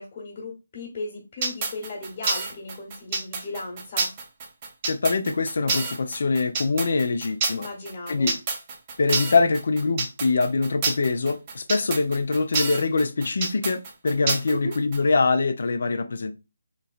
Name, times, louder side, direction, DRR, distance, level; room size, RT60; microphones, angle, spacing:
voice 1, 0.0-4.1 7.5-8.3 14.5-14.7, left 2 dB, 30° left, 1.2 m, -36 dB
sound 1, 1.4-15.0, right 4 dB, 30° right, 0.7 m, -28 dB
voice 2, 4.9-7.7 8.1-8.3 9.0-16.3, left 3 dB, 55° left, 0.5 m, -23 dB
3.7 x 3.0 x 2.4 m
figure-of-eight pair, 155°, 0 cm